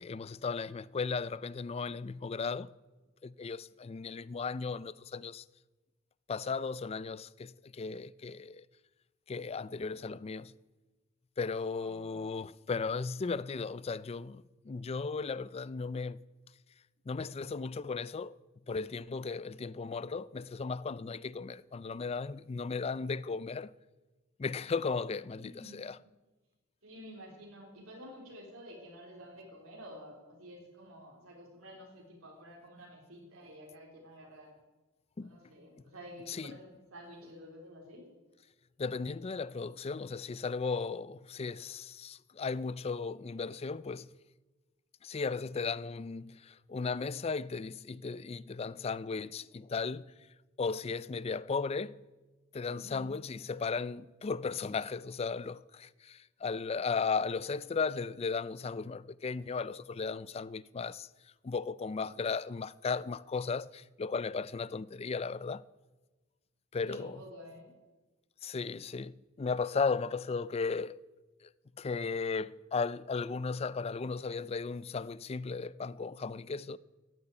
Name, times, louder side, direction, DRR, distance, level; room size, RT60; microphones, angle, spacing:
voice 1, 0.0-2.7 3.2-5.4 6.3-8.7 9.3-10.5 11.4-16.2 17.1-18.3 18.7-23.7 24.4-26.0 35.2-35.4 36.3-36.6 38.8-44.1 45.0-50.1 50.6-52.0 52.5-61.1 61.4-65.6 66.7-67.2 68.4-71.0 71.4-71.5 71.8-76.8, left 4 dB, 30° left, 0.4 m, -36 dB
voice 2, 11.8-12.3 25.4-25.8 26.8-34.5 35.2-38.1 52.7-53.1 66.8-67.7, equal, 90° right, 3.9 m, -50 dB
14.5 x 7.9 x 9.8 m
head